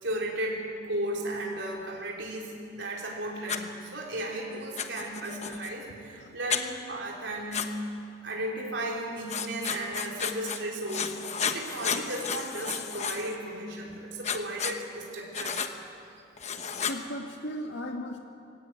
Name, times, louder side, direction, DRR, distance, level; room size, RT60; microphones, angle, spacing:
voice 1, 0.0-7.7 8.2-15.7, right 1 dB, 85° right, -2 dB, 3.8 m, -35 dB
Writing, 3.5-3.6 4.8-5.7 6.5-6.6 7.5-7.7 9.3-10.6 10.9-13.4 14.2-14.8 15.3-15.7 16.4-17.0, left 6 dB, 40° left, 1.2 m, -32 dB
voice 2, 16.9-18.2, equal, 80° left, 2 dB, 2.0 m, -36 dB
22.0 x 17.5 x 8.9 m, 2.5 s
head